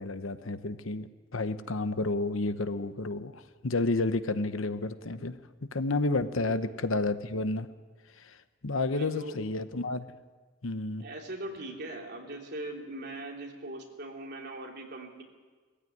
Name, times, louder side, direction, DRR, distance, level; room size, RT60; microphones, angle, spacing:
voice 1, 0.0-5.4 5.7-7.7 8.2-8.4 8.6-10.1 10.6-11.0, left 2 dB, 70° left, 11 dB, 0.9 m, -31 dB
voice 2, 8.9-9.4 11.0-15.2, right 1 dB, 50° right, 0 dB, 3.2 m, -40 dB
21.0 x 15.0 x 9.4 m, 1.4 s
head